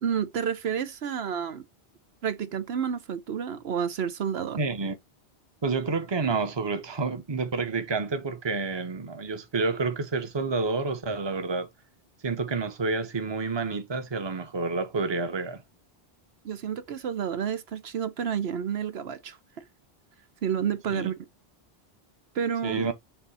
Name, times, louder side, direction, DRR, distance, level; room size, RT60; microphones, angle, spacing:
voice 1, 0.0-1.6 2.2-4.6 16.4-19.4 20.4-21.2 22.3-22.9, right 8 dB, 75° right, 1.0 m, -30 dB
voice 2, 4.6-5.0 5.6-11.7 12.2-15.6 20.9-21.1 22.6-22.9, right 4 dB, 25° right, 0.9 m, -29 dB
6.9 x 2.7 x 5.6 m
omnidirectional pair, 1.1 m